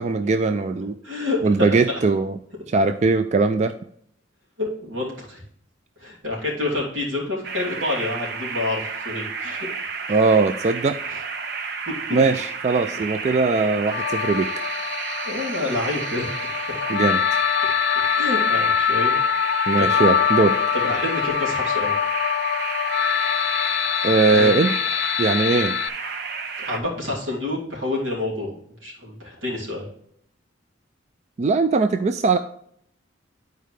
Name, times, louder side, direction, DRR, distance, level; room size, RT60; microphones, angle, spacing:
voice 1, 0.0-1.0 1.4-2.3 2.7-3.7 10.1-11.0 12.1-14.5 16.9-17.2 19.7-20.6 24.0-24.7 25.2-25.7 31.4-32.4, right 3 dB, 35° right, 9 dB, 0.3 m, -20 dB
voice 2, 1.0-1.8 4.6-5.4 6.0-9.7 11.1-11.2 12.1-12.2 15.2-16.6 18.1-19.2 19.8-19.9 20.7-21.9 24.3-24.5 26.6-28.5 28.8-29.9, left 2 dB, 80° right, -4 dB, 3.0 m, -28 dB
sound 1, 7.4-26.8, right 5 dB, 55° right, 0.7 m, -31 dB
sound 2, 13.9-25.9, left 9 dB, 60° left, 0.4 m, -24 dB
11.0 x 4.6 x 3.2 m, 0.68 s
head